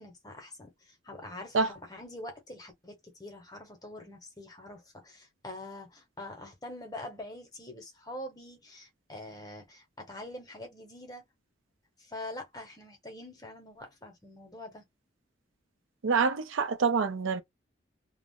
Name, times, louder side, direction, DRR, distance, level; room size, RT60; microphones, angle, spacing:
voice 1, 0.0-11.3 12.0-14.8, left 1 dB, 20° left, 0.8 m, -45 dB
voice 2, 16.0-17.4, right 5 dB, 80° right, 0.5 m, -26 dB
2.4 x 2.0 x 3.5 m
head